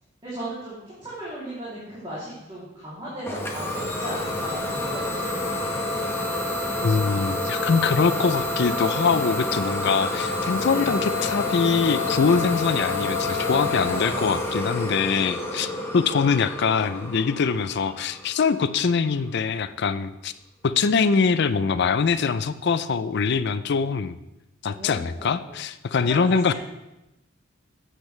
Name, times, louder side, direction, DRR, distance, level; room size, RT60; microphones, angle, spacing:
voice 1, 0.2-5.5 10.6-11.0 16.1-16.2 24.7-25.5 26.0-26.5, right 1 dB, 25° right, -9 dB, 2.9 m, -36 dB
Idling / Domestic sounds home sounds, 3.3-18.8, left 2 dB, 10° left, 1.3 m, -28 dB
voice 2, 6.8-20.3 20.6-24.2 24.6-26.5, left 5 dB, 55° left, 14 dB, 0.5 m, -23 dB
13.5 x 8.1 x 3.3 m, 0.95 s
head